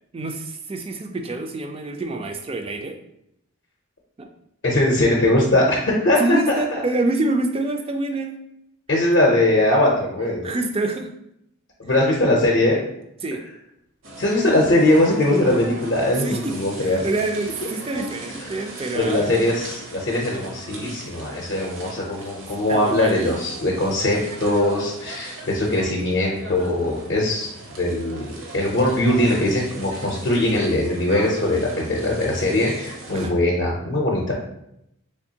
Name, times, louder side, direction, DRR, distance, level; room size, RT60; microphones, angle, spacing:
voice 1, 0.1-2.9 4.2-4.3 6.2-8.4 10.4-11.1 13.2-13.4 16.2-16.5 16.8-19.5 22.7-23.4 33.1-33.3, right 2 dB, 25° right, 5 dB, 0.3 m, -26 dB
voice 2, 4.6-6.4 6.7-6.8 8.9-10.5 11.8-12.8 14.2-17.1 18.9-27.5 27.8-34.3, left 1 dB, 55° left, -3 dB, 0.6 m, -21 dB
sound 1, 14.0-33.3, right 2 dB, 60° right, 0.7 m, -39 dB
3.4 x 3.1 x 2.7 m, 0.79 s
head